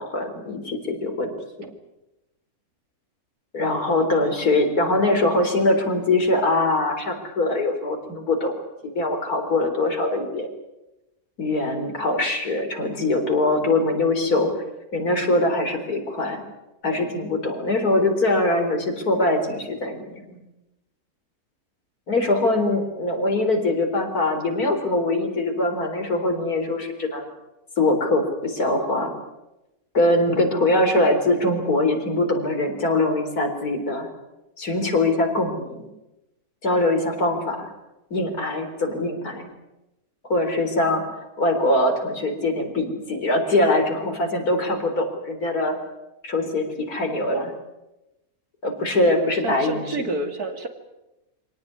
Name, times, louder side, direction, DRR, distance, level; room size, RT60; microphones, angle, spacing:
voice 1, 0.0-1.3 3.5-8.5 8.8-10.5 11.4-14.5 14.9-16.4 16.8-20.4 22.1-27.3 27.8-29.1 29.9-34.1 34.6-35.9 36.6-37.7 38.1-39.5 40.3-45.8 46.2-47.5 48.6-50.1, left 2 dB, 90° left, 4 dB, 4.4 m, -22 dB
voice 2, 49.4-50.7, right 2 dB, 85° right, 6 dB, 3.1 m, -29 dB
25.0 x 18.0 x 9.7 m, 0.97 s
omnidirectional pair, 1.6 m